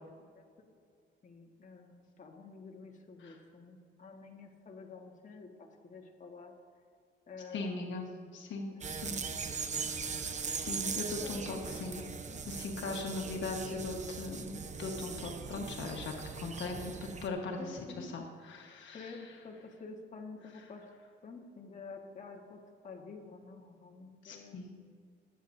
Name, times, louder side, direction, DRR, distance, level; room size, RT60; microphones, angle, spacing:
voice 1, 1.2-6.5 7.3-8.3 8.7-9.0 11.2-11.8 12.3-12.4 12.8-13.1 17.6-18.1 18.9-20.8 21.2-24.9, left 4 dB, 40° left, 1 dB, 1.6 m, -50 dB
voice 2, 7.5-8.1 8.3-9.2 10.5-12.0 12.5-19.2 24.2-24.7, left 3 dB, 70° left, 1 dB, 1.4 m, -39 dB
sound 1, 8.8-17.3, right 5 dB, 35° right, 0.9 m, -40 dB
22.5 x 8.6 x 2.7 m, 2.2 s
cardioid pair, 90°, 20 cm